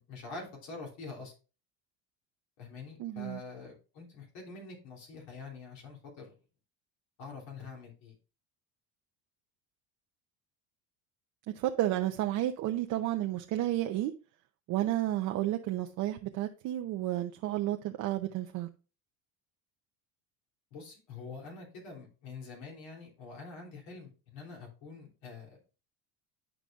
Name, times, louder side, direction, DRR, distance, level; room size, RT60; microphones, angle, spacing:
voice 1, 0.1-1.3 2.6-6.3 7.2-8.1 20.7-25.7, left 4 dB, 70° left, 3.2 m, -46 dB
voice 2, 3.0-3.4 11.6-14.1 14.7-18.7, right 14 dB, 50° right, 0.7 m, -31 dB
11.0 x 4.9 x 2.4 m
cardioid pair, 140°, 39 cm